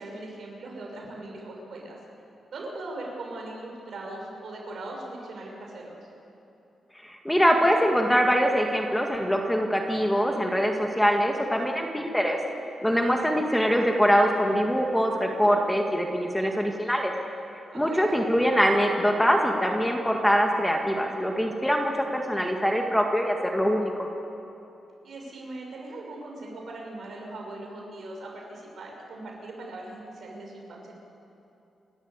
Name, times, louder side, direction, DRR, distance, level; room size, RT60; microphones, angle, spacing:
voice 1, 0.0-2.0 2.5-6.0 17.7-18.1 25.0-30.9, right 2 dB, 65° right, -1 dB, 6.3 m, -40 dB
voice 2, 7.0-12.4 12.8-17.1 17.7-24.1, equal, 5° left, 2 dB, 1.9 m, -23 dB
28.5 x 13.0 x 8.3 m, 2.9 s
cardioid pair, 105°, 0 cm